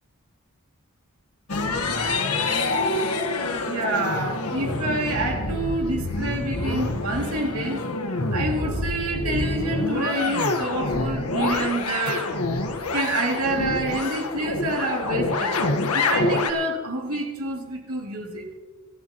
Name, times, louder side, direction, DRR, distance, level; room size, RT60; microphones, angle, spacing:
sound 1, 1.5-16.5, left 3 dB, 90° left, 1.4 m, -26 dB
voice 1, 3.7-7.8 8.3-12.4 12.9-18.4, right 2 dB, 85° right, 2.7 m, -27 dB
26.5 x 12.5 x 3.0 m
head